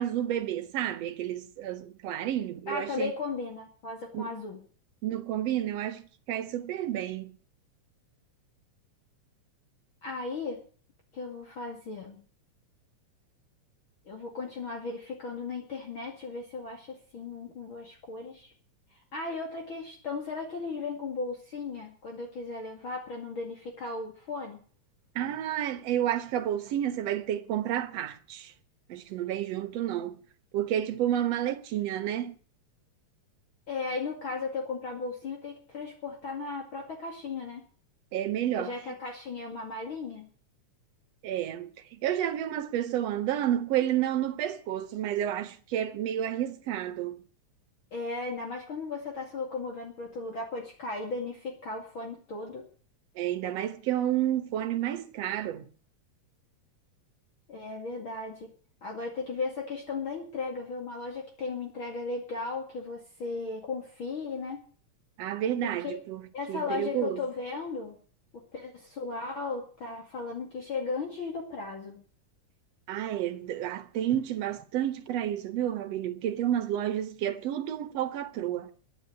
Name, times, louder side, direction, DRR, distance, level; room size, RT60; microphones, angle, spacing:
voice 1, 0.0-3.1 4.1-4.3 5.0-6.0 6.3-7.3 25.2-28.5 28.9-30.2 30.5-32.3 38.1-38.9 41.2-47.2 53.2-55.7 65.2-66.2 66.5-67.2 72.9-78.7, right 11 dB, 65° right, 2.1 m, -30 dB
voice 2, 2.7-4.6 10.0-10.6 11.1-12.2 14.1-18.5 19.1-24.6 33.7-37.6 38.6-40.3 47.9-52.6 57.5-58.5 58.8-64.6 65.6-65.9 66.3-68.0 68.5-72.0, left 4 dB, 45° left, 2.9 m, -36 dB
11.0 x 10.5 x 9.6 m
omnidirectional pair, 3.4 m